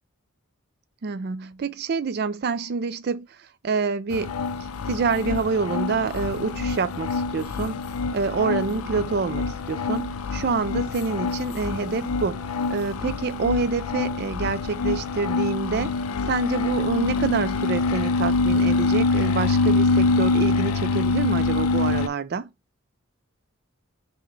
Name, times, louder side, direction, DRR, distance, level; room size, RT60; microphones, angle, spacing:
voice 1, 1.0-4.4 4.8-7.8 8.1-16.0 16.3-22.5, right 4 dB, 45° right, 0.3 m, -27 dB
sound 1, 4.1-22.1, left 3 dB, 75° left, 0.4 m, -25 dB
5.8 x 2.1 x 3.2 m
head